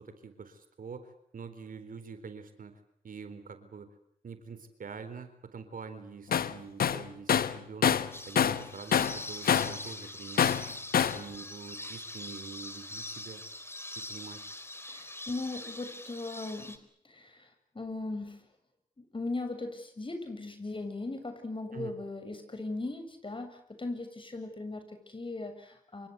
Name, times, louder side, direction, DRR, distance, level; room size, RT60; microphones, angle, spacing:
voice 1, 0.0-3.9 4.2-10.6 11.0-13.4 14.0-14.5 21.7-21.9, right 5 dB, 60° right, 10 dB, 4.0 m, -45 dB
Tools, 6.3-6.5 6.8-8.7 8.9-9.8 10.4-11.2, left 8 dB, 70° left, 1.2 m, -26 dB
sound 1, 8.1-16.8, left 1 dB, 15° left, 4.2 m, -43 dB
voice 2, 14.9-17.5 17.7-18.5 19.0-26.1, left 2 dB, 30° left, 8 dB, 7.4 m, -38 dB
28.0 x 25.5 x 8.3 m, 0.67 s
supercardioid pair, 50°, 16 cm